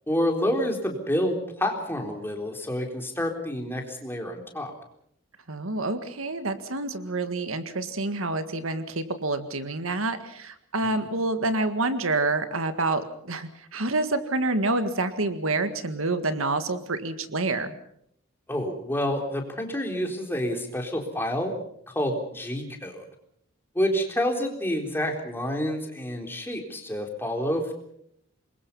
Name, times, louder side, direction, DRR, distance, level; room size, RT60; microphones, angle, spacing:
voice 1, 0.1-4.7 10.8-11.0 18.5-21.5 21.9-23.0 23.8-27.7, equal, 10° left, 2 dB, 3.8 m, -28 dB
voice 2, 5.5-17.8, right 2 dB, 85° right, 9 dB, 1.8 m, -28 dB
26.5 x 22.0 x 5.6 m, 0.71 s
head